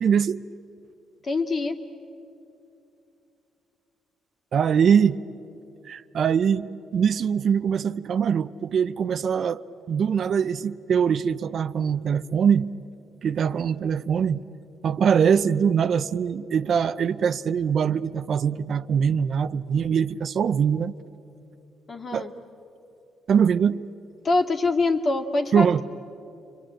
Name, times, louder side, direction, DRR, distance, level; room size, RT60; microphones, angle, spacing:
voice 1, 0.0-0.4 4.5-5.2 5.8-12.7 13.2-14.4 14.8-20.9 22.1-22.3 23.3-23.8 25.5-25.8, right 7 dB, 60° right, 0.6 m, -23 dB
voice 2, 1.2-1.8 21.9-22.3 24.2-25.8, left 3 dB, 40° left, 2.3 m, -24 dB
30.0 x 22.5 x 8.9 m
cardioid pair, 90°, 0 cm